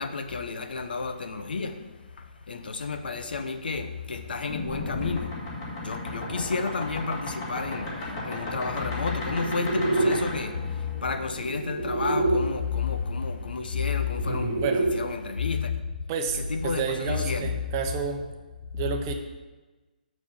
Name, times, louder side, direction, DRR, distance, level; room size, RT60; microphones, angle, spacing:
voice 1, 0.0-1.9 2.5-5.4 5.7-15.8 16.4-17.5, left 5 dB, 75° left, 8 dB, 1.0 m, -31 dB
sound 1, 4.5-12.4 13.7-14.9, right 1 dB, 25° left, 2.1 m, -31 dB
voice 2, 14.2-14.9 16.1-18.2 18.7-19.1, right 6 dB, 20° right, 4 dB, 0.8 m, -30 dB
7.3 x 6.2 x 7.2 m, 1.2 s
hypercardioid pair, 170°, 5 cm